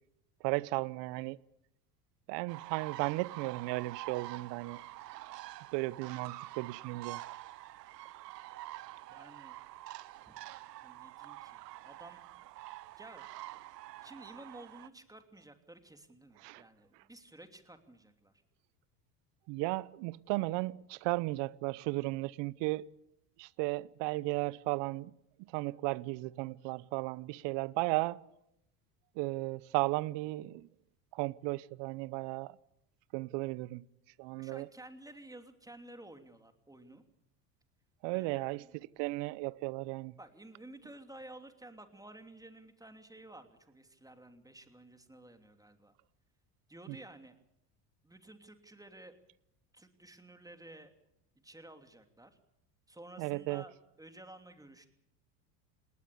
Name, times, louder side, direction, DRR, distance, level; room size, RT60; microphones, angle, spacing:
voice 1, 0.4-1.4 2.3-4.8 5.7-7.2 16.4-16.6 19.5-22.9 23.4-25.1 25.5-28.2 29.2-30.7 31.1-32.6 33.1-33.8 34.2-34.7 38.0-40.1 46.9-47.0 53.2-53.6, right 22 dB, 60° right, 0.9 m, -35 dB
sound 1, 2.5-14.9, right 16 dB, 90° right, 1.0 m, -47 dB
voice 2, 9.1-9.5 10.3-10.4 10.8-12.2 13.0-13.2 14.0-18.3 34.4-37.0 38.1-38.9 40.2-45.9 46.7-47.4 48.0-49.2 49.7-50.9 51.4-52.3 52.9-54.9, right 1 dB, 5° right, 3.0 m, -53 dB
19.5 x 19.0 x 8.4 m
hypercardioid pair, 85°, 47 cm